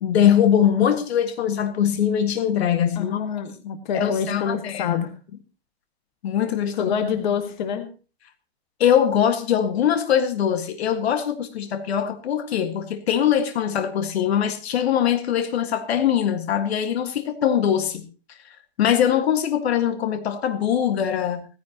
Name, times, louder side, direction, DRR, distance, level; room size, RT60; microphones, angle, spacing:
voice 1, 0.0-3.3 3.9-5.0 6.2-6.9 8.8-18.0 18.8-21.5, left 9 dB, 70° left, 1.9 m, -22 dB
voice 2, 3.0-5.1 6.8-7.9, left 7 dB, 45° left, 1.8 m, -26 dB
17.0 x 15.5 x 3.0 m
supercardioid pair, 180°, 32 cm